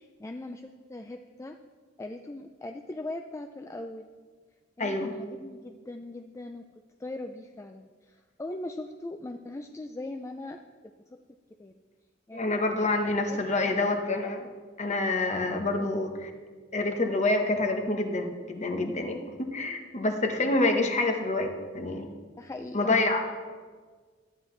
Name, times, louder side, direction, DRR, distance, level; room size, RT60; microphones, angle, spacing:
voice 1, 0.0-1.6 2.0-4.1 4.8-6.6 7.0-10.6 11.6-11.7 12.3-12.4 13.3-13.7 15.8-15.9 20.0-20.4 22.4-23.0, left 2 dB, 15° left, 5 dB, 0.3 m, -40 dB
voice 2, 4.8-5.1 12.3-14.5 14.8-16.3 16.7-22.1 22.7-23.2, left 2 dB, 35° left, 4 dB, 1.0 m, -27 dB
13.0 x 9.6 x 3.2 m, 1.5 s
head